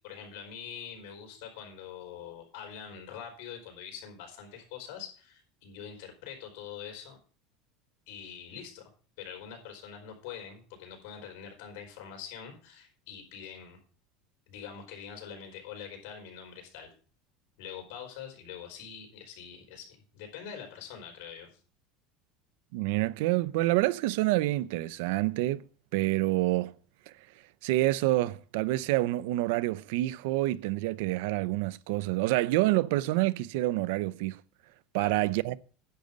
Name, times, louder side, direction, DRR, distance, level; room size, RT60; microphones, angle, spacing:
voice 1, 0.0-7.2 8.1-8.8 9.2-13.8 14.5-16.9 17.6-21.5 34.9-35.2, left 8 dB, 75° left, 4.3 m, -44 dB
voice 2, 22.7-25.6 25.9-26.7 27.6-34.4 34.9-35.6, right 18 dB, 75° right, 0.5 m, -27 dB
10.5 x 5.2 x 8.1 m
supercardioid pair, 145°, 0 cm